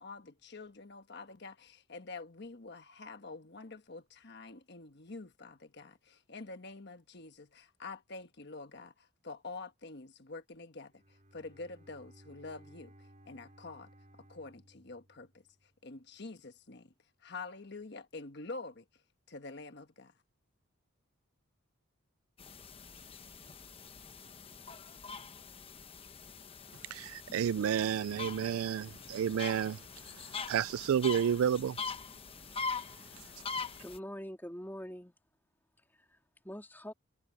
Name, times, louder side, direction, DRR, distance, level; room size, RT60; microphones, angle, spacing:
voice 1, 0.0-13.9 14.2-16.9 17.2-19.0 19.3-20.1, left 3 dB, 50° left, 1.3 m, -47 dB
Bowed string instrument, 10.8-15.9, right 1 dB, 35° right, 5.6 m, -60 dB
sound 1, 22.4-34.0, left 5 dB, 25° left, 0.9 m, -43 dB
voice 2, 26.9-29.8 30.1-31.8 32.6-32.8, right 8 dB, 80° right, 0.3 m, -31 dB
voice 3, 33.8-35.1 35.8-36.9, equal, 10° left, 3.2 m, -45 dB
head